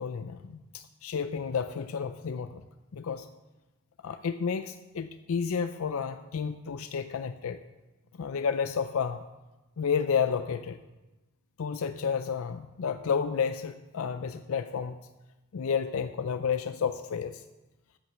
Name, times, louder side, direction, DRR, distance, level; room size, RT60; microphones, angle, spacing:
voice 1, 0.0-2.6 2.9-3.3 4.0-7.6 8.2-9.2 9.8-10.8 11.6-15.0 15.5-17.4, left 6 dB, 70° left, 11 dB, 0.4 m, -31 dB
9.1 x 8.3 x 6.9 m, 1.1 s
head